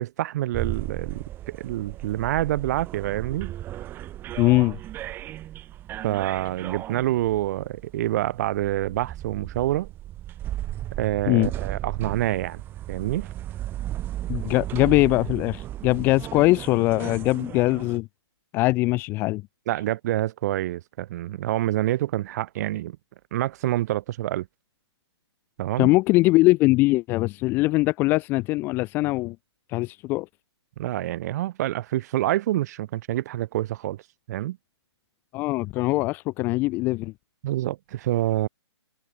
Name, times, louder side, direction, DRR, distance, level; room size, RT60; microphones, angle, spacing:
voice 1, 0.0-3.5 6.0-9.9 11.0-12.6 12.9-13.3 19.7-23.0 23.3-24.5 25.6-25.9 30.8-34.0 34.3-34.6 37.4-38.5, right 14 dB, 35° right, 3.0 m, -27 dB
sound 1, 0.5-18.0, right 13 dB, 15° right, 1.5 m, -35 dB
voice 2, 4.4-4.8 11.3-11.5 14.3-18.1 18.5-19.4 25.8-29.4 29.7-30.3 35.3-37.1, left 21 dB, 15° left, 0.5 m, -21 dB
hypercardioid pair, 160°, 15 cm